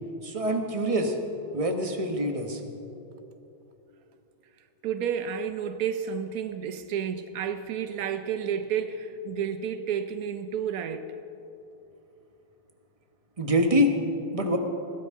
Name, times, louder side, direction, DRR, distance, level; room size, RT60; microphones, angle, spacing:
voice 1, 0.2-1.2 1.5-2.6 13.4-13.9 14.3-14.6, equal, 25° right, 0.8 m, -25 dB
voice 2, 4.8-11.1, right 7 dB, 85° right, 0.7 m, -31 dB
21.0 x 15.5 x 3.7 m
omnidirectional pair, 2.3 m